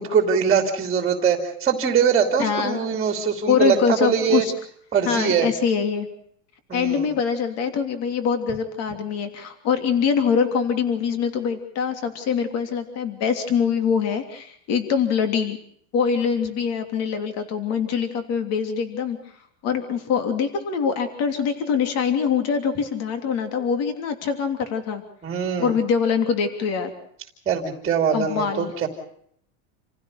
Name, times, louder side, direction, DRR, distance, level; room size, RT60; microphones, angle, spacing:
voice 1, 0.0-4.4 4.9-5.5 6.7-7.1 25.2-25.7 27.5-28.9, right 7 dB, 15° right, 5 dB, 2.8 m, -22 dB
voice 2, 2.4-2.8 3.5-4.5 5.0-6.1 6.7-15.6 15.9-19.2 19.6-25.0 25.6-26.9 28.1-28.7, left 6 dB, 40° left, 7 dB, 3.2 m, -24 dB
28.5 x 16.0 x 6.6 m, 0.68 s
supercardioid pair, 160°, 41 cm